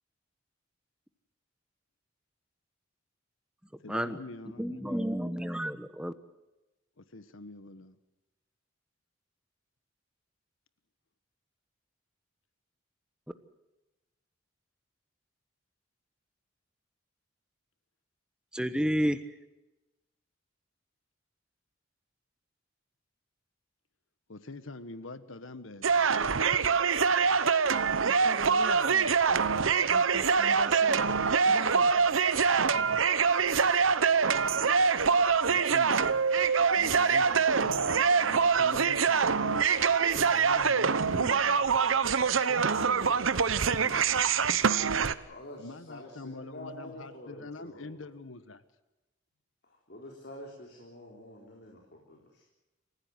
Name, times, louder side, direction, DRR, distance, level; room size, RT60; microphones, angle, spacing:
voice 1, 3.8-5.1 7.0-8.0 24.3-25.8 35.5-35.9 36.8-39.7 40.1-41.6 43.7-44.3 45.6-48.6, left 2 dB, 85° left, 12 dB, 1.3 m, -45 dB
voice 2, 4.6-6.1 18.5-19.2, equal, 5° right, 10 dB, 1.1 m, -30 dB
sound 1, 25.8-45.1, right 5 dB, 85° right, 0.9 m, -25 dB
voice 3, 28.0-29.2 29.8-32.1 36.3-36.5 42.5-43.3, right 2 dB, 65° right, 6 dB, 2.2 m, -41 dB
voice 4, 45.2-48.1 49.6-52.4, left 1 dB, 55° left, -1 dB, 4.0 m, -47 dB
28.5 x 15.5 x 7.9 m, 1.0 s
head